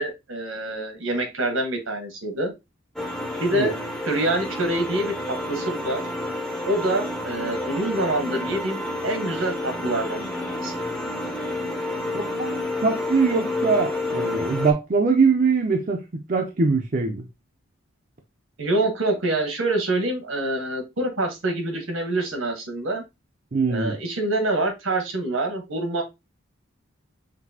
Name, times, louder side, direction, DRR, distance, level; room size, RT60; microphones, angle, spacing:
voice 1, 0.0-2.5 3.4-3.7 4.0-6.0 6.7-10.8 18.6-23.0 23.7-26.0, right 1 dB, 80° right, 1.4 m, -26 dB
sound 1, 3.0-14.7, left 2 dB, ahead, 0.6 m, -29 dB
voice 2, 12.1-16.0 16.3-17.2 23.5-24.0, right 4 dB, 40° right, 0.5 m, -22 dB
6.0 x 2.7 x 2.7 m
head